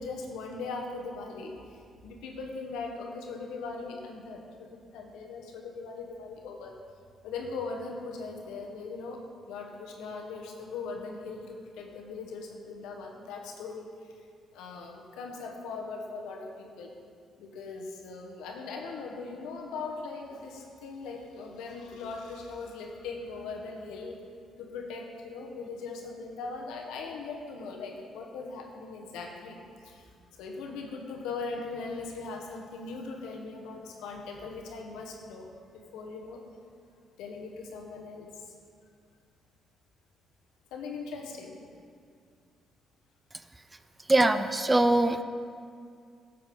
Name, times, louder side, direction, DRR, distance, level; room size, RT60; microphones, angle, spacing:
voice 1, 0.0-6.7 7.2-9.2 9.5-13.9 14.5-16.9 17.4-24.2 24.6-30.1 30.4-35.5 35.7-36.4 37.2-38.5 40.7-41.6, left 4 dB, 90° left, 1 dB, 1.2 m, -40 dB
voice 2, 44.1-45.2, right 2 dB, 20° right, 10 dB, 0.5 m, -22 dB
11.5 x 7.5 x 3.8 m, 2.3 s
cardioid pair, 75°, 0 cm